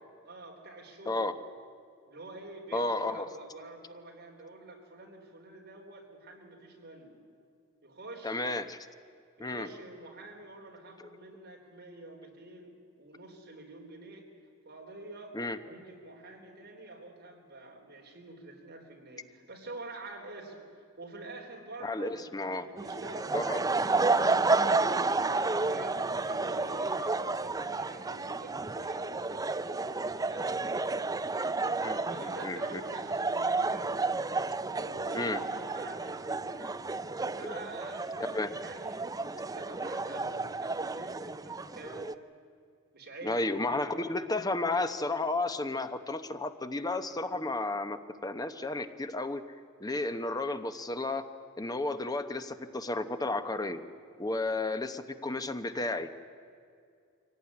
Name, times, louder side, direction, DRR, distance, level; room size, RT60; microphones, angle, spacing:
voice 1, 0.2-1.3 2.1-7.2 7.8-8.5 9.4-14.3 14.7-30.8 31.5-33.9 34.7-36.9 37.2-39.0 39.4-42.1 42.9-43.8, right 2 dB, 50° right, 1 dB, 3.9 m, -47 dB
voice 2, 2.7-3.3 8.2-8.8 9.4-9.7 15.3-15.6 21.8-22.7 23.3-23.6 31.8-32.0 32.4-32.8 35.1-35.4 37.4-37.5 38.3-38.5 43.2-49.4 49.8-51.3 51.6-53.8 54.2-56.3, left 2 dB, 20° left, 9 dB, 0.9 m, -32 dB
sound 1, 22.8-42.1, right 3 dB, 15° right, 0.5 m, -31 dB
24.0 x 17.5 x 9.7 m, 2.3 s
head